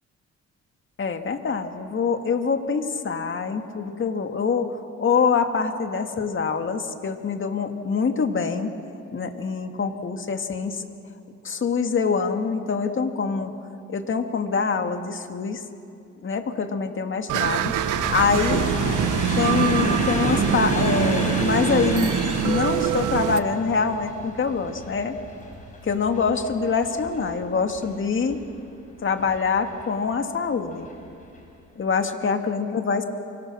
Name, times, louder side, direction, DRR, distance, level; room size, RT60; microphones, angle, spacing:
voice 1, 1.0-8.7 9.1-10.8 11.4-13.5 13.9-15.6 16.2-18.7 19.3-22.2 22.4-25.2 25.8-28.4 29.0-30.9 31.8-33.0, left 5 dB, 40° left, 6 dB, 2.0 m, -25 dB
sound 1, 17.3-23.4, right 12 dB, 85° right, 0.9 m, -24 dB
sound 2, 17.4-28.5 29.2-29.8 30.7-30.9 31.2-31.4, left 1 dB, 25° left, 6.1 m, -31 dB
28.5 x 25.0 x 6.2 m, 2.6 s
cardioid pair, 90°, 30 cm